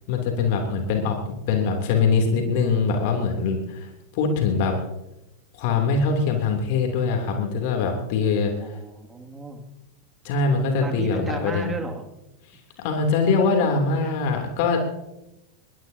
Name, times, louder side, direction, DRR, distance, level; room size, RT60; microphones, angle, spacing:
voice 1, 0.1-1.2 1.5-4.7 5.5-8.7 10.2-11.7 12.8-14.8, left 4 dB, 45° left, 2 dB, 3.1 m, -23 dB
voice 2, 8.6-9.6 10.8-12.1 14.0-14.1, right 3 dB, 15° right, 4 dB, 2.4 m, -34 dB
22.0 x 21.0 x 2.9 m, 0.92 s
figure-of-eight pair, 90°, 0 cm